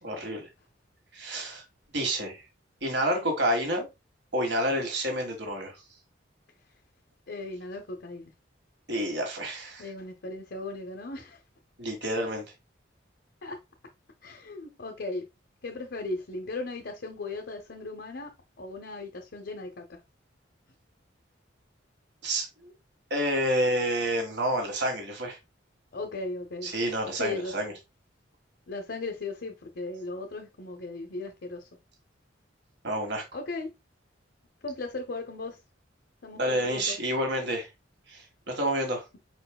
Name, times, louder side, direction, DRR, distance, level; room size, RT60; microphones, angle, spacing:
voice 1, 0.0-0.5 1.1-1.6 1.9-2.4 2.8-3.9 4.3-5.8 8.9-9.8 11.8-12.4 22.2-22.7 23.1-25.4 26.6-27.7 32.8-33.2 36.4-37.7 38.1-39.0, right 1 dB, 60° right, 1.6 m, -29 dB
voice 2, 7.3-8.3 9.8-11.4 13.4-13.6 14.2-15.3 15.6-18.3 18.6-19.8 25.9-26.7 27.2-27.5 28.7-31.7 33.3-33.7 34.6-35.6 36.2-37.0, left 2 dB, 60° left, 0.7 m, -37 dB
4.9 x 4.5 x 2.2 m
head